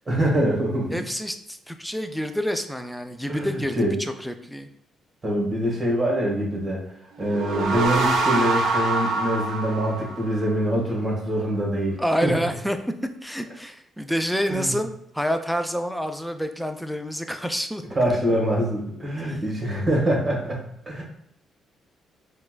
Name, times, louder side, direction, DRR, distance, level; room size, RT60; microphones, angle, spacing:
voice 1, 0.1-1.0 3.3-3.9 5.2-6.8 7.2-12.3 14.5-14.8 17.9-21.0, equal, 25° right, -3 dB, 1.4 m, -24 dB
voice 2, 0.9-4.7 12.0-12.8 13.2-17.8 19.3-19.4, equal, ahead, 7 dB, 0.3 m, -28 dB
sound 1, 7.2-10.7, right 3 dB, 75° right, 0.4 m, -25 dB
4.3 x 2.2 x 2.4 m, 0.75 s
cardioid pair, 90°, 0 cm